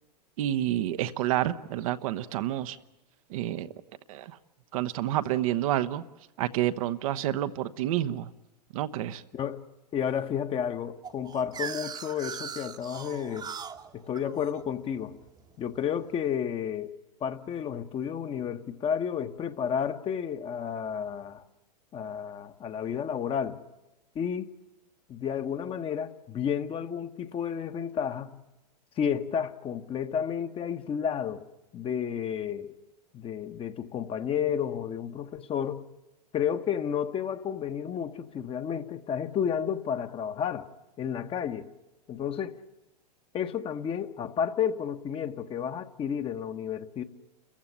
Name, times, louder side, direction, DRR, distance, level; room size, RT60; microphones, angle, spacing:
voice 1, 0.4-2.8 3.3-3.7 4.1-4.4 4.7-6.0 6.4-8.3 8.7-9.2, right 13 dB, 55° right, 1.0 m, -29 dB
voice 2, 9.3-9.6 9.9-13.5 13.9-15.2 15.6-21.4 21.9-23.6 24.1-24.5 25.1-28.4 29.0-31.4 31.7-32.7 33.1-35.8 36.3-40.7 41.0-41.7 42.1-42.6 43.3-47.0, left 8 dB, 25° left, 1.4 m, -31 dB
sound 1, 11.0-15.8, right 7 dB, 20° right, 1.2 m, -40 dB
29.5 x 15.0 x 10.0 m
hypercardioid pair, 105°, 21 cm